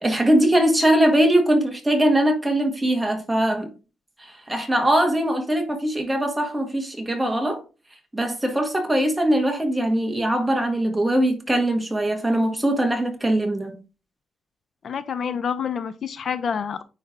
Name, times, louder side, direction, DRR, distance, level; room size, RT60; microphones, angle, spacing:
voice 1, 0.0-3.7 4.2-7.6 8.1-13.8, right 1 dB, 10° right, 1.4 m, -21 dB
voice 2, 14.8-16.8, left 7 dB, 50° left, 0.4 m, -27 dB
9.4 x 3.3 x 3.6 m
wide cardioid pair, 155°, 0 cm